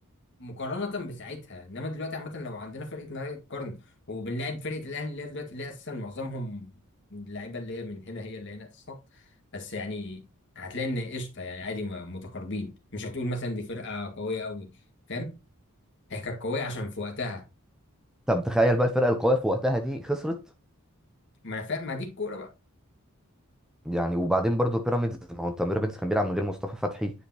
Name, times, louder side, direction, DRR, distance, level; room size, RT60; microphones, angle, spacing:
voice 1, 0.4-3.8 4.1-6.7 7.1-10.2 10.6-14.7 15.1-15.3 16.1-17.5 21.4-22.5, left 2 dB, 55° left, 2.0 m, -35 dB
voice 2, 18.3-20.4 23.9-27.1, equal, 5° right, 0.7 m, -26 dB
9.7 x 5.0 x 2.9 m
head